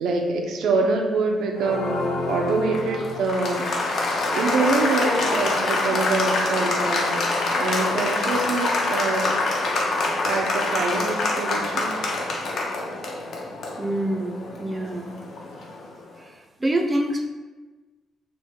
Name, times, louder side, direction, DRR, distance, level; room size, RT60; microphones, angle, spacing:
voice 1, 0.0-3.7 4.3-7.3 7.5-9.3 10.2-11.9, right 3 dB, 80° right, 3 dB, 0.4 m, -25 dB
Applause, 1.6-15.9, left 2 dB, 65° left, 0.5 m, -26 dB
voice 2, 13.8-15.1 16.2-17.3, right 1 dB, 20° right, 3 dB, 0.4 m, -26 dB
3.1 x 2.1 x 3.4 m, 1.3 s
cardioid pair, 90°, 0 cm